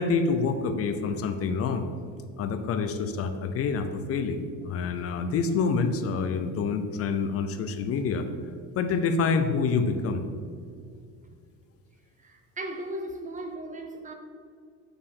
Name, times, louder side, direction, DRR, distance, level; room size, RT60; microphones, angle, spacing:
voice 1, 0.0-1.8 2.4-8.2 8.8-10.2, left 5 dB, 40° left, 0.5 m, -27 dB
voice 2, 12.2-14.1, right 1 dB, 20° right, 0.4 m, -37 dB
8.4 x 4.8 x 3.7 m
cardioid pair, 145°, 37 cm